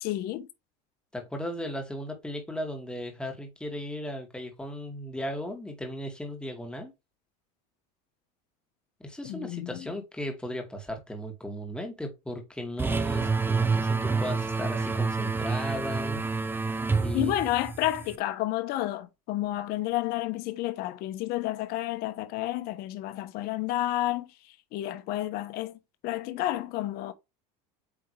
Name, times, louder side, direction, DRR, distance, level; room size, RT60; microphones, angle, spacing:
voice 1, 0.0-0.5 9.2-9.9 17.1-24.3 24.7-27.1, left 15 dB, 55° left, 1.0 m, -30 dB
voice 2, 1.1-6.9 9.0-16.2 17.0-17.3, equal, 5° left, 2.1 m, -36 dB
sound 1, 12.8-18.2, right 4 dB, 10° right, 0.7 m, -28 dB
8.5 x 3.5 x 3.3 m
supercardioid pair, 130°, 18 cm